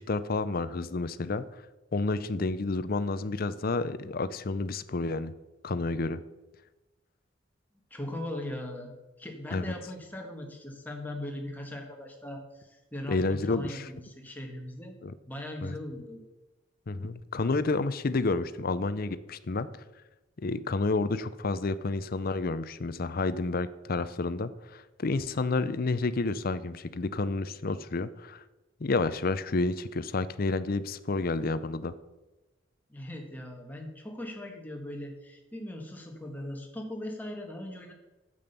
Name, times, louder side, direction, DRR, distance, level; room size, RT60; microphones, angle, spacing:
voice 1, 0.0-1.6 1.9-5.3 5.6-6.2 9.5-9.7 13.1-13.9 15.0-15.1 15.6-15.7 16.9-19.7 20.4-28.4 28.8-31.9, left 3 dB, 50° left, 15 dB, 0.6 m, -30 dB
voice 2, 7.9-8.9 9.2-15.0 15.2-16.2 32.9-37.9, left 1 dB, 10° left, 1 dB, 1.8 m, -39 dB
8.9 x 7.8 x 6.8 m, 1.1 s
head